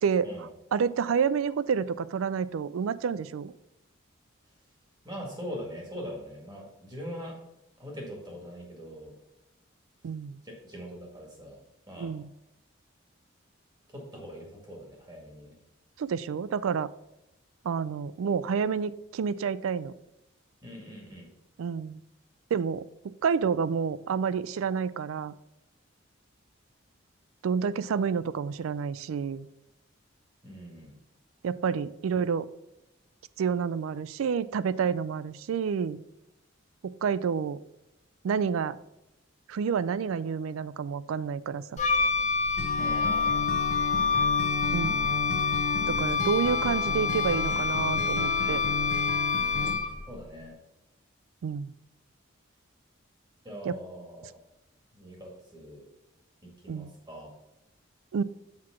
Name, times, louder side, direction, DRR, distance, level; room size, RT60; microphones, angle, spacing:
voice 1, 0.0-0.3 0.7-3.5 10.0-10.4 12.0-12.3 16.0-16.9 17.6-19.9 21.6-22.0 22.5-22.8 23.2-25.3 27.4-29.5 31.4-32.5 33.4-36.0 36.8-37.6 38.2-38.8 39.5-41.8 44.7-45.1 45.9-48.6 51.4-51.7 53.6-53.8 56.7-56.9 58.1-58.2, right 6 dB, 85° right, 17 dB, 0.4 m, -29 dB
voice 2, 5.0-7.4 7.8-9.1 10.4-12.1 13.9-15.5 20.6-21.3 30.4-30.9 42.8-43.4 50.1-50.6 53.4-54.3 54.9-55.9 56.4-57.3, equal, 20° right, -1 dB, 1.9 m, -42 dB
Wind instrument woodwind instrument, 41.8-50.1, left 5 dB, 35° left, 0.7 m, -27 dB
Acoustic guitar, 42.6-49.7, left 3 dB, 85° left, 0.8 m, -35 dB
5.9 x 4.7 x 5.8 m, 0.91 s
head